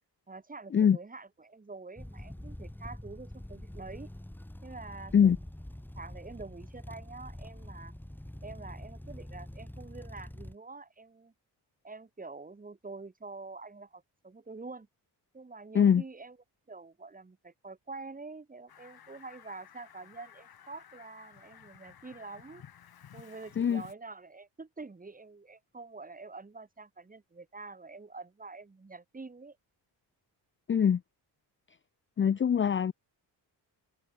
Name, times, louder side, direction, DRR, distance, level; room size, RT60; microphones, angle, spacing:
voice 1, 0.3-4.1 4.6-5.4 6.0-7.9 8.4-11.3 11.8-14.9 15.3-16.4 16.7-22.6 23.1-29.6, right 3 dB, 20° right, 3.3 m, -46 dB
sound 1, 2.0-10.6, left 1 dB, 5° left, 4.3 m, -45 dB
Fowl, 18.7-23.9, left 9 dB, 60° left, 5.5 m, -54 dB
voice 2, 30.7-31.0 32.2-32.9, left 8 dB, 30° left, 0.5 m, -23 dB
wide cardioid pair, 150°, 41 cm